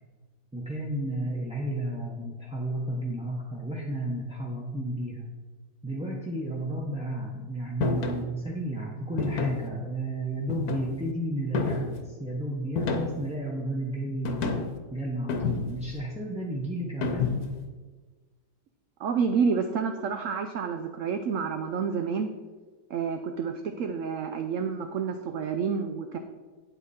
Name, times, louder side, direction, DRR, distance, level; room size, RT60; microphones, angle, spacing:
voice 1, 0.5-5.3 5.8-14.4 14.9-17.3, right 1 dB, 5° right, -4 dB, 0.8 m, -32 dB
sound 1, 7.8-8.2 9.2-9.7 10.5-11.1 11.5-12.0 12.8-13.3 14.2-14.8 15.3-15.9 17.0-17.6, left 4 dB, 65° left, 1.3 m, -29 dB
voice 2, 19.0-22.3 22.9-26.2, right 6 dB, 65° right, 7 dB, 0.8 m, -29 dB
8.9 x 8.1 x 4.3 m, 1.4 s
omnidirectional pair, 1.8 m